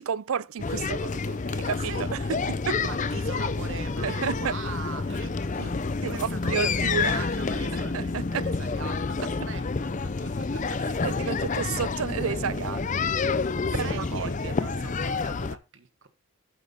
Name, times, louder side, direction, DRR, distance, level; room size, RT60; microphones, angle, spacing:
voice 1, 0.0-2.8 4.0-4.5 6.0-7.3 7.7-8.5 11.0-13.0 13.7-14.8, right 7 dB, 85° right, 0.5 m, -32 dB
sound 1, 0.6-15.6, left 4 dB, 35° left, 0.5 m, -29 dB
sound 2, 1.0-12.7 13.1-14.1, right 1 dB, 30° right, 2.6 m, -53 dB
voice 2, 1.8-2.1 2.9-10.8 11.5-11.8 13.7-16.1, right 4 dB, 60° right, 1.1 m, -42 dB
9.4 x 8.2 x 4.0 m
head